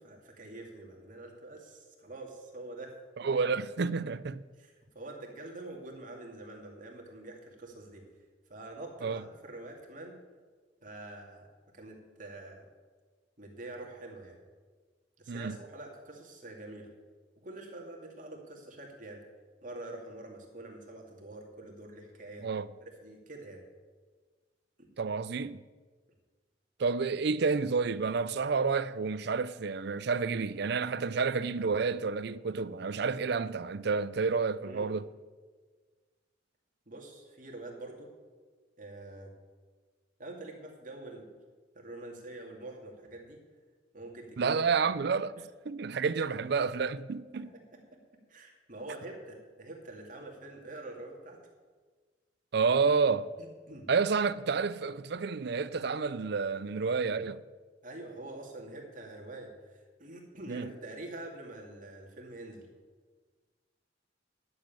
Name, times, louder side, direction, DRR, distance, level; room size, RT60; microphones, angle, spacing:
voice 1, 0.0-3.0 4.6-8.0 8.5-10.2 10.8-11.5 11.7-12.7 13.4-14.4 15.2-16.9 17.4-19.2 19.6-22.5 22.8-23.6 24.8-24.9 34.6-34.9 36.9-38.1 38.8-39.3 40.2-41.3 41.7-43.4 43.9-44.5 47.3-48.0 48.3-51.4 53.4-53.9 57.8-62.7, right 2 dB, 45° right, 2.4 m, -46 dB
voice 2, 3.2-4.4 9.0-9.2 15.3-15.6 22.4-22.7 25.0-25.6 26.8-35.1 44.4-45.3 45.7-47.5 52.5-53.3 53.9-57.4 60.5-60.7, right 5 dB, 60° right, 0.5 m, -30 dB
11.0 x 7.2 x 9.0 m
head